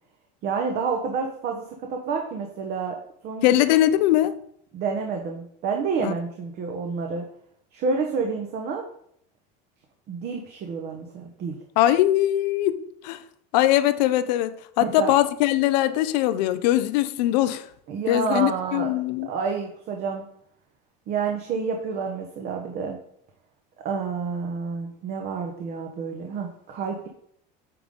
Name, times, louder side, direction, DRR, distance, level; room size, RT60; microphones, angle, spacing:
voice 1, 0.4-1.6 1.9-3.0 3.2-3.6 4.7-7.2 7.7-8.8 10.1-11.6 14.8-15.1 17.9-18.9 19.3-20.2 21.1-23.0 23.8-27.1, right 5 dB, 50° right, 2 dB, 1.3 m, -29 dB
voice 2, 3.4-4.4 6.0-6.1 11.8-13.2 13.5-17.7 18.1-19.3, left 13 dB, 85° left, 11 dB, 0.6 m, -21 dB
9.2 x 3.9 x 5.3 m, 0.69 s
supercardioid pair, 125°, 21 cm